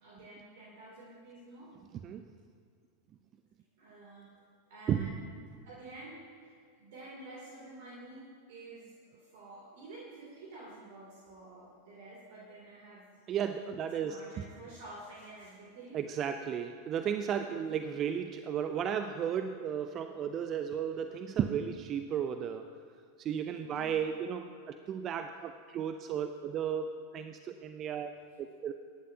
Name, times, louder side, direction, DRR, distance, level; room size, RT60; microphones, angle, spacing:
voice 1, 0.0-1.7 3.8-4.4 4.7-5.3 5.6-6.5 6.8-13.2 13.7-16.0 16.3-16.4 17.5-17.7 23.6-24.0, right 2 dB, 55° right, -5 dB, 2.7 m, -50 dB
voice 2, 1.9-2.3 4.9-5.3 13.3-14.4 15.9-22.7 23.2-28.1 28.4-28.7, right 8 dB, 35° right, 8 dB, 0.5 m, -34 dB
23.0 x 11.0 x 2.8 m, 2.1 s
figure-of-eight pair, 90°, 0 cm